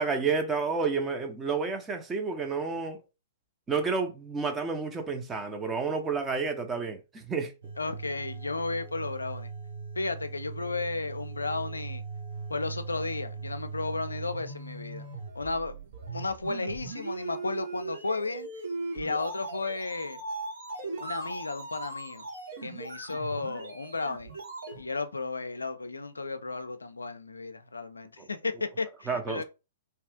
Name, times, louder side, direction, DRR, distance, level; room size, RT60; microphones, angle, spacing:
voice 1, 0.0-3.0 3.7-7.5 28.2-28.3 29.1-29.4, right 5 dB, 15° right, 0.7 m, -30 dB
sound 1, 7.6-24.9, right 4 dB, 60° right, 1.1 m, -39 dB
voice 2, 7.8-9.5 10.0-12.0 12.5-15.1 15.3-15.7 16.1-18.5 18.9-20.2 21.0-22.3 22.6-24.3 24.8-29.4, left 3 dB, 80° left, 0.4 m, -33 dB
2.8 x 2.4 x 3.4 m
figure-of-eight pair, 110°, 0 cm